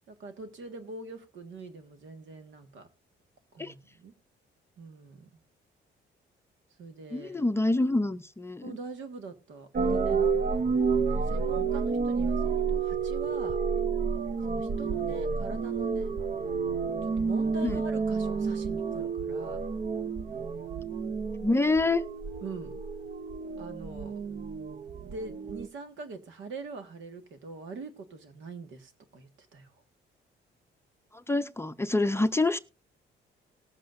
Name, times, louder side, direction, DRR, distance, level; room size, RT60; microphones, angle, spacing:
voice 1, 0.1-2.9 3.5-4.1 4.8-5.4 6.8-7.4 8.6-10.6 11.1-13.6 14.5-16.1 17.0-19.7 22.4-22.8 23.6-24.1 25.0-29.7, right 3 dB, 75° right, 1.7 m, -43 dB
voice 2, 7.1-8.8 17.6-17.8 21.4-22.0 31.1-32.6, left 2 dB, 10° left, 0.6 m, -26 dB
sound 1, 9.7-25.7, right 5 dB, 40° right, 0.7 m, -30 dB
19.0 x 7.7 x 2.6 m
cardioid pair, 90°, 20 cm